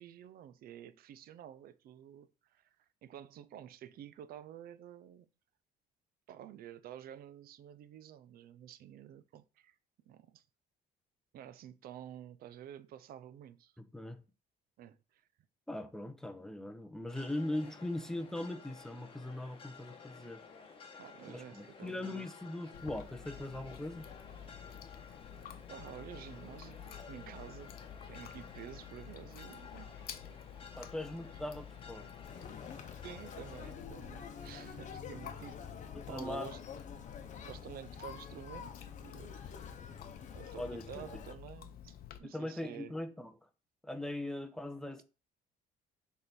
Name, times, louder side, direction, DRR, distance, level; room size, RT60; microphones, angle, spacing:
voice 1, 0.0-2.8 3.0-5.3 6.3-9.8 10.1-10.4 11.3-13.7 14.8-15.2 20.9-22.3 25.7-27.8 28.1-30.1 33.0-36.6 37.4-39.5 40.3-42.9, right 10 dB, 60° right, 0.6 m, -50 dB
voice 2, 13.8-14.2 15.7-20.4 21.3-24.1 30.8-32.1 35.9-36.5 40.5-41.0 42.2-43.3 43.8-45.0, left 1 dB, 5° left, 0.8 m, -40 dB
sound 1, 17.1-33.7, left 5 dB, 30° left, 1.3 m, -53 dB
Chewing mastication, 22.7-42.2, left 9 dB, 65° left, 0.7 m, -51 dB
Conversation, 32.2-41.3, left 7 dB, 45° left, 1.0 m, -48 dB
6.5 x 3.5 x 4.3 m
cardioid pair, 110°, 17 cm